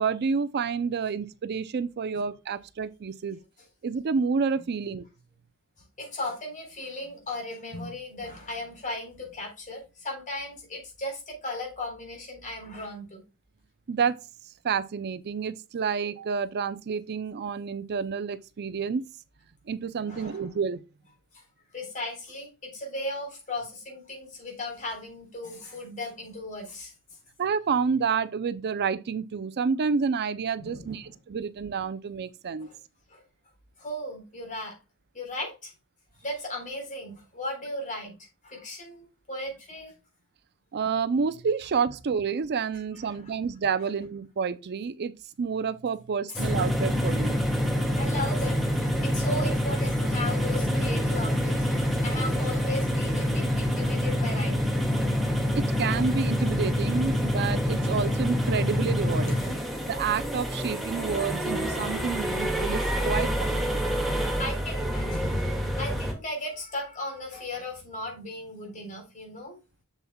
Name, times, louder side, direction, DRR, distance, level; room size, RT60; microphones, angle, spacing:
voice 1, 0.0-3.4 3.8-5.1 13.9-14.2 14.6-19.0 19.7-20.8 27.4-32.7 40.7-47.4 55.6-59.4 59.8-63.8, right 5 dB, 50° right, 0.4 m, -29 dB
voice 2, 6.0-13.2 20.1-20.5 21.3-21.4 21.7-26.9 30.6-31.2 32.6-32.8 33.1-33.2 33.8-34.8 35.1-35.7 36.2-39.9 43.2-43.3 43.8-43.9 46.3-46.5 48.0-51.6 52.0-54.9 59.1-59.7 63.2-63.3 64.2-69.6, left 1 dB, 35° left, 3.8 m, -36 dB
sound 1, 46.4-66.1, equal, ahead, 1.9 m, -27 dB
8.0 x 7.0 x 2.2 m
head